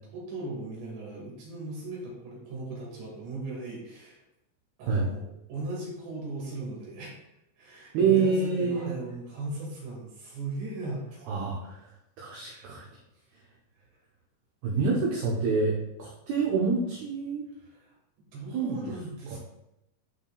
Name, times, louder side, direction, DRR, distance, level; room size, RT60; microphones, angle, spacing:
voice 1, 0.1-4.2 4.8-7.3 7.6-11.3 12.3-12.7 13.8-13.9 17.6-17.9 18.3-19.4, right 2 dB, 65° right, -4 dB, 4.0 m, -38 dB
voice 2, 7.9-8.9 11.3-11.8 12.2-12.9 14.6-17.4 18.5-18.8 19.3-19.4, right 5 dB, 85° right, -3 dB, 2.2 m, -26 dB
11.5 x 4.9 x 2.3 m, 0.86 s
omnidirectional pair, 5.9 m